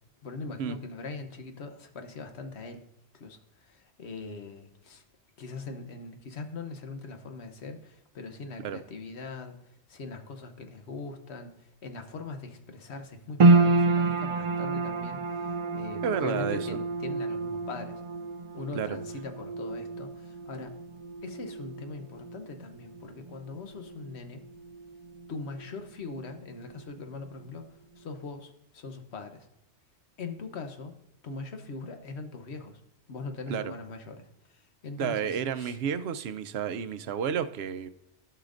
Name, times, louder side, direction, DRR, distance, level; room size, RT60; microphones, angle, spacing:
voice 1, 0.2-2.8 3.1-5.0 5.4-18.0 18.5-20.7 21.2-24.4 25.3-29.5 30.2-30.9 31.2-32.8 33.1-35.8, left 4 dB, 70° left, 6 dB, 1.2 m, -41 dB
sound 1, 13.4-25.8 26.1-27.0 27.5-27.6, right 3 dB, 50° right, 0.3 m, -29 dB
voice 2, 16.0-16.6 18.7-19.0 33.5-33.7 35.0-37.9, right 7 dB, 70° right, 11 dB, 0.8 m, -31 dB
15.0 x 5.7 x 2.5 m, 0.87 s
omnidirectional pair, 1.2 m